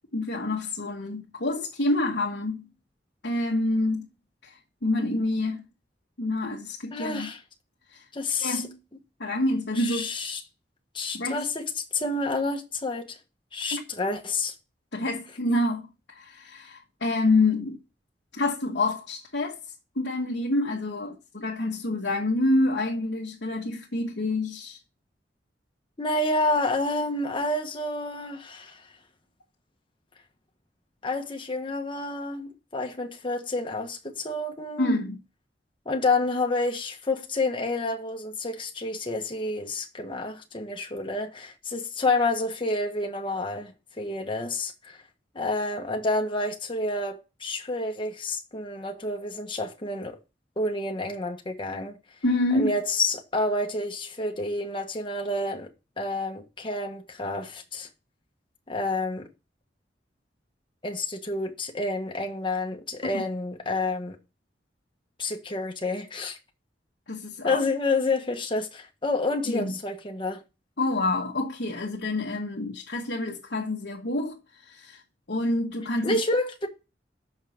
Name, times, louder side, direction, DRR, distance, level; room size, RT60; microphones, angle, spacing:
voice 1, 0.1-2.6 3.2-4.1 4.4-5.6 6.2-7.3 7.9-8.0 8.4-8.8 9.2-10.1 11.1-11.4 13.7-13.8 14.9-17.8 18.3-19.6 19.9-24.8 34.8-35.2 52.2-52.7 63.1-63.2 67.1-67.6 69.5-69.8 70.8-75.0 75.3-76.2, left 2 dB, 90° left, 1.4 m, -27 dB
voice 2, 6.9-7.4 8.1-8.6 9.8-10.4 10.9-13.2 13.5-14.5 26.0-28.8 31.0-34.9 35.8-45.0 45.3-50.2 50.6-52.0 52.5-55.7 56.0-57.9 58.7-59.3 60.8-64.2 65.2-66.4 67.4-70.4 76.0-76.7, left 2 dB, 30° left, 1.5 m, -29 dB
6.5 x 5.8 x 7.1 m
head